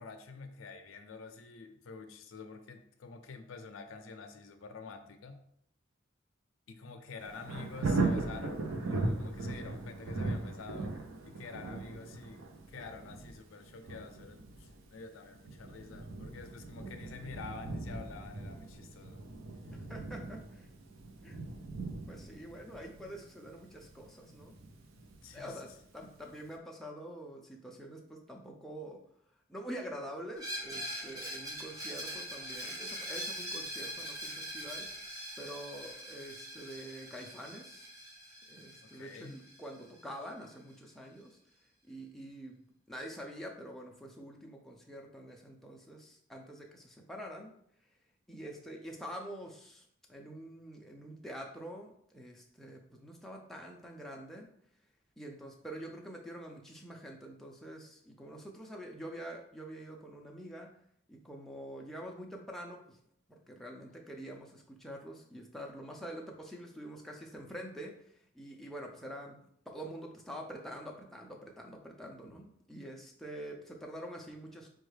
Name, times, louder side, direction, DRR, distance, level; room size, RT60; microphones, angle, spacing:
voice 1, 0.0-5.4 6.7-19.2 25.2-25.6 38.8-39.4, left 4 dB, 85° left, 6 dB, 0.4 m, -48 dB
Thunder, 7.2-26.0 26.4-26.5, right 3 dB, 85° right, 0.5 m, -39 dB
voice 2, 19.7-20.7 21.2-21.7 22.1-24.6 25.3-29.0 29.5-34.9 35.4-37.9 38.5-41.4 41.8-47.5 48.3-54.5 55.2-60.7 61.1-63.0 63.3-67.9 68.3-74.7, equal, ahead, -1 dB, 0.4 m, -46 dB
Screech, 30.4-40.0, equal, 20° right, 0.7 m, -42 dB
4.4 x 2.3 x 3.2 m, 0.69 s
head